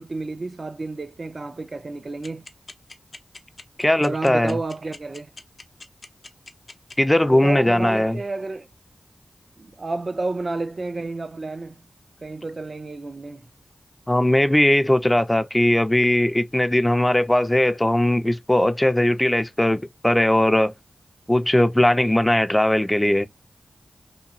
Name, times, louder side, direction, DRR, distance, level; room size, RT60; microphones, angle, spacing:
voice 1, 0.0-2.5 4.0-5.3 7.3-8.7 9.8-11.8 12.2-13.4, right 3 dB, 55° right, 0.4 m, -30 dB
sound 1, 2.2-6.9, left 3 dB, 60° left, 0.6 m, -41 dB
voice 2, 3.8-4.6 7.0-8.2 14.1-20.7 21.3-23.3, left 1 dB, 15° left, 0.4 m, -19 dB
2.8 x 2.3 x 2.6 m
cardioid pair, 45°, 0 cm